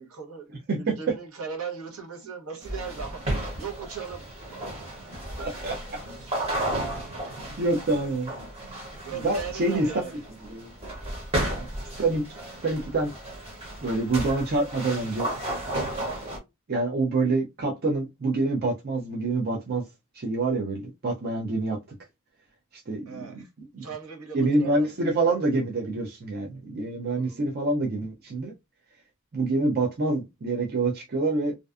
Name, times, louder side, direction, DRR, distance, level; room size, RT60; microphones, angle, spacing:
voice 1, 0.0-3.3 3.6-4.7 6.1-6.3 7.5-7.6 9.0-10.2 23.1-23.5 23.8-25.4 27.1-27.4, right 6 dB, 75° right, 0.9 m, -39 dB
voice 2, 0.7-1.1 5.4-5.8 7.6-8.3 9.2-9.9 10.5-10.7 12.0-12.2 12.6-13.1 13.8-15.3 16.7-19.8 20.1-21.8 22.9-23.4 23.7-23.8 24.3-28.5 29.3-31.5, right 2 dB, 45° right, 0.5 m, -26 dB
sound 1, 2.6-16.4, right 1 dB, 25° right, 0.9 m, -33 dB
2.5 x 2.2 x 2.4 m
head